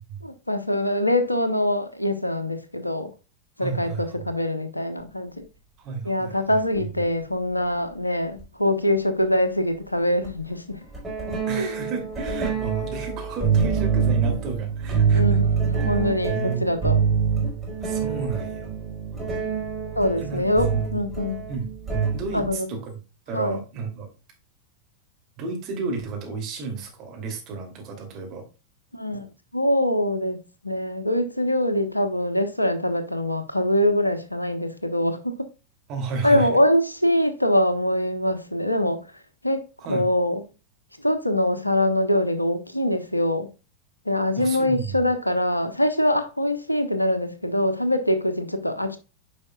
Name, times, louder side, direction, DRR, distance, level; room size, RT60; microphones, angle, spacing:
voice 1, 0.2-3.1 3.6-5.5 6.0-10.8 11.6-11.7 15.1-17.0 20.0-21.4 22.3-22.7 23.3-23.6 28.9-29.3 29.5-30.4 30.6-35.4 36.2-39.0 39.4-39.6 39.9-40.4 41.0-43.5 44.1-49.0, left 1 dB, 85° left, 0.9 m, -23 dB
voice 2, 3.6-4.3 5.8-6.6 11.5-15.4 16.2-16.7 17.8-18.7 20.2-21.0 21.5-21.7 22.1-23.0 23.3-24.1 25.4-28.5 35.9-36.5 39.8-40.1 44.4-45.0, right 4 dB, 40° right, 2.7 m, -32 dB
sound 1, 6.8-6.9 8.4-8.5 10.2-10.4 10.9-22.5, right 6 dB, 5° right, 4.3 m, -25 dB
9.8 x 5.1 x 2.3 m
figure-of-eight pair, 90°, 0 cm